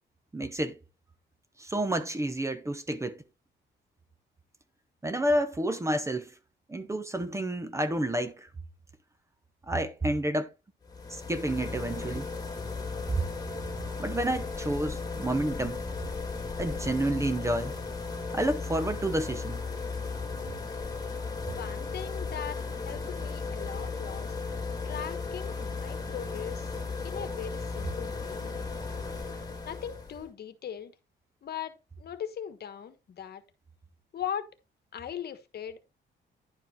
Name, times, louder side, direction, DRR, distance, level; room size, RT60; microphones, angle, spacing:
voice 1, 0.3-0.8 1.6-3.2 5.0-6.3 6.7-8.5 9.7-10.5 11.1-12.3 13.1-13.2 14.0-15.8 16.6-17.8 18.3-19.6, right 1 dB, 15° right, 0.9 m, -30 dB
sound 1, 10.8-30.2, left 4 dB, 20° left, 2.8 m, -36 dB
voice 2, 21.5-24.3 24.8-26.7 27.0-28.5 29.6-30.9 31.4-33.4 34.1-34.5 34.9-35.8, left 8 dB, 55° left, 1.3 m, -39 dB
10.5 x 5.0 x 4.2 m
cardioid pair, 125°, 19 cm